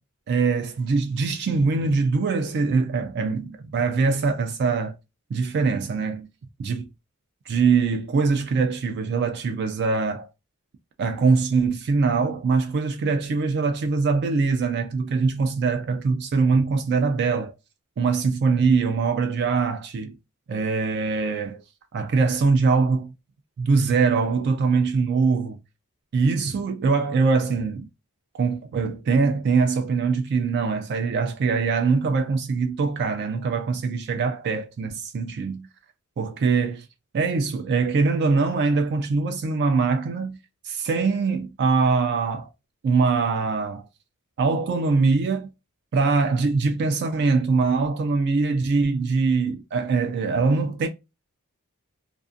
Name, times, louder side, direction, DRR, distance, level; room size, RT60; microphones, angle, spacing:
voice 1, 0.3-4.9 5.3-6.3 6.6-6.9 7.5-10.3 11.0-17.5 18.0-20.1 20.5-21.6 21.9-23.1 23.6-25.6 26.1-27.9 28.3-35.7 36.2-36.9 37.1-40.4 40.6-42.5 42.8-43.9 44.4-45.5 45.9-50.9, right 4 dB, 50° right, 0.3 m, -23 dB
2.5 x 2.4 x 2.4 m
head